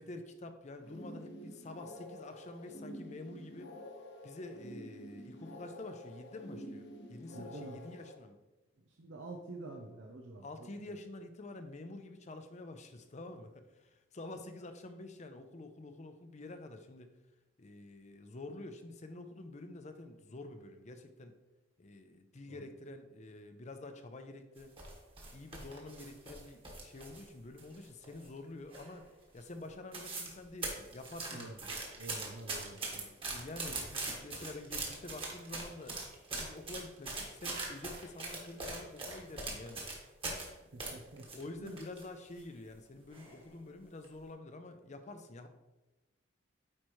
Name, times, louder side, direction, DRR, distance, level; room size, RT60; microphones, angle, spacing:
voice 1, 0.0-3.7 4.2-8.4 10.4-17.1 17.6-21.4 21.8-24.8 25.3-29.1 29.3-31.8 32.8-36.0 36.4-39.8 41.3-45.5, left 2 dB, 40° left, 8 dB, 0.6 m, -48 dB
sound 1, 0.8-8.2, equal, 70° left, 0.9 m, -49 dB
voice 2, 7.3-7.8 8.9-10.7 22.5-22.6 31.3-31.6 32.0-33.1 40.6-41.3 41.6-41.8, right 2 dB, 90° right, 1 dB, 0.7 m, -48 dB
sound 2, 24.6-27.3 27.6-28.4 28.7-29.1 29.4-29.5 29.7-30.3 30.6-40.5 40.8-42.0 42.4-42.5 43.1-43.4 43.8-44.0, right 3 dB, 30° right, 1.4 m, -41 dB
8.7 x 5.0 x 3.1 m, 1.1 s
head